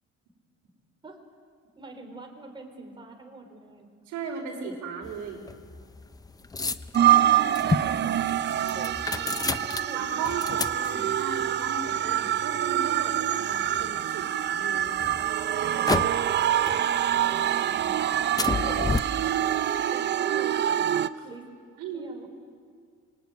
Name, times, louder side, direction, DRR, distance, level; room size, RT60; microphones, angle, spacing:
voice 1, 1.8-4.0 7.6-8.2 8.7-10.4 19.5-20.6 21.2-21.5 21.9-22.3, right 2 dB, 15° right, 2 dB, 3.8 m, -46 dB
voice 2, 4.1-5.5 9.9-15.0 21.1-21.2 21.8-22.1, right 5 dB, 85° right, 2 dB, 5.2 m, -36 dB
sound 1, 5.0-14.2 14.8-16.4 16.7-17.5 17.8-19.0, left 3 dB, 15° left, 0.7 m, -33 dB
sound 2, 6.9-21.1, right 11 dB, 40° right, 0.7 m, -25 dB
27.0 x 23.0 x 9.5 m, 2.2 s
cardioid pair, 145°, 29 cm